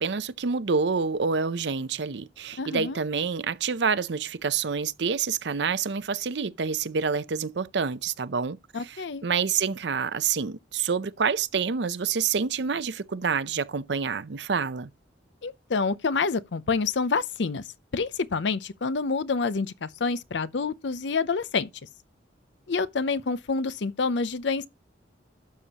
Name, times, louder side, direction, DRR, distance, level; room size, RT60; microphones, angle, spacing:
voice 1, 0.0-14.9, right 5 dB, 70° right, 0.6 m, -27 dB
voice 2, 2.6-3.0 8.7-9.2 15.4-17.6 17.9-21.7 22.7-24.7, left 4 dB, 75° left, 0.6 m, -27 dB
12.0 x 7.0 x 2.9 m
head